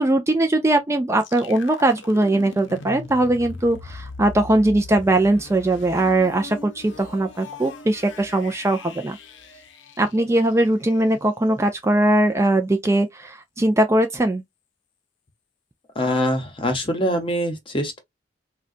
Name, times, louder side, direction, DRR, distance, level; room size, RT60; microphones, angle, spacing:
voice 1, 0.0-9.2 10.0-14.4, right 1 dB, 15° right, 0.3 m, -20 dB
sound 1, 1.2-11.0, left 3 dB, 90° left, 0.6 m, -40 dB
voice 2, 15.9-18.0, equal, 30° left, 0.9 m, -23 dB
3.8 x 2.2 x 2.5 m
head